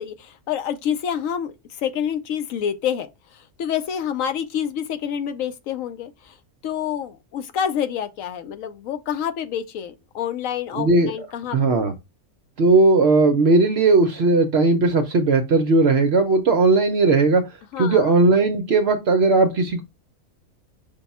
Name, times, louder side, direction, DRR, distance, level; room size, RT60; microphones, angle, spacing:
voice 1, 0.0-6.4 6.6-11.6 17.7-18.1, left 8 dB, 70° left, 0.9 m, -28 dB
voice 2, 10.8-11.1 11.5-11.9 12.6-17.4 17.8-19.8, right 3 dB, 60° right, 0.7 m, -17 dB
5.3 x 2.3 x 4.0 m
omnidirectional pair, 1.5 m